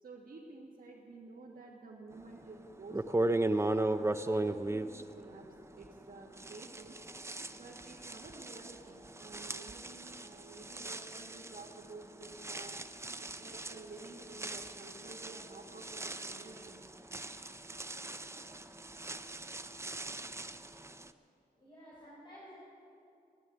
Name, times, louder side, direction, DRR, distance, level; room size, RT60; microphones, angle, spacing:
voice 1, 0.0-3.3 3.7-5.4 5.7-6.9 7.5-12.8 13.2-16.8, right 3 dB, 65° right, -4 dB, 1.6 m, -51 dB
sound 1, 2.4-2.5 2.9-6.0 6.4-21.1, right 2 dB, 20° right, 0.5 m, -38 dB
voice 2, 21.5-22.5, equal, 30° left, -7 dB, 4.5 m, -53 dB
14.5 x 11.0 x 8.9 m, 2.6 s
wide cardioid pair, 100°, 15 cm